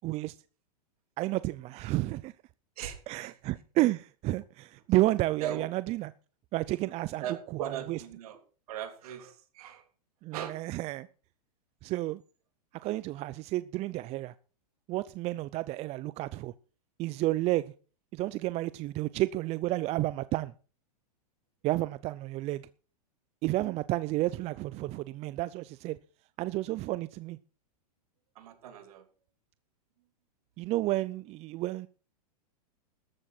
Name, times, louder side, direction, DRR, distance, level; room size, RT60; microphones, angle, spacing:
voice 1, 0.0-0.4 1.2-2.3 3.1-6.1 6.5-7.2 7.5-8.0 10.2-11.1 11.8-12.2 12.7-14.3 14.9-16.5 17.0-17.6 18.1-20.5 21.6-22.6 23.4-26.0 26.4-27.4 30.6-31.9, right 17 dB, 30° right, 0.5 m, -31 dB
voice 2, 2.8-3.3 5.4-5.7 7.2-8.4 8.7-9.8 10.3-10.6 12.8-12.9 28.4-29.1, right 10 dB, 65° right, 3.4 m, -39 dB
14.0 x 12.0 x 4.4 m
hypercardioid pair, 120°, 21 cm